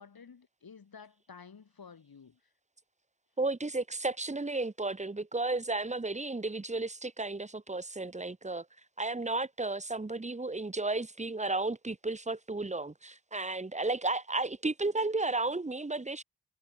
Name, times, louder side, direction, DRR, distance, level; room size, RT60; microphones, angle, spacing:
voice 1, 0.0-2.4, left 6 dB, 65° left, 2.0 m, -52 dB
voice 2, 3.4-8.7 9.0-16.2, right 2 dB, 20° right, 0.9 m, -33 dB
wide cardioid pair, 60°, 38 cm